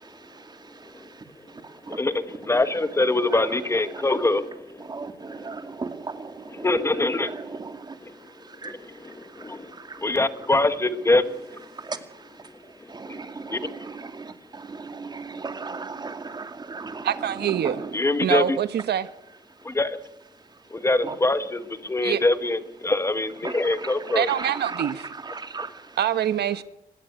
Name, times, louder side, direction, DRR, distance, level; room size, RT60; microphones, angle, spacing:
voice 1, 0.0-2.0 3.3-3.5 3.9-4.0 4.8-8.0 8.5-8.7 9.1-10.1 11.7-12.3 12.9-18.0 21.0-21.2 23.4-26.0, right 4 dB, 25° right, 2.3 m, -37 dB
voice 2, 1.9-4.6 6.6-7.4 8.6-8.8 9.0-9.1 9.4-9.7 10.0-11.4 13.1-13.2 13.5-13.9 17.9-18.6 19.6-20.0 20.7-24.3, left 2 dB, 15° left, 1.3 m, -24 dB
voice 3, 17.0-17.8 18.2-19.1 22.0-22.2 24.1-25.0 26.0-26.6, right 10 dB, 90° right, 1.4 m, -24 dB
25.0 x 21.0 x 9.4 m
wide cardioid pair, 170°, 17 cm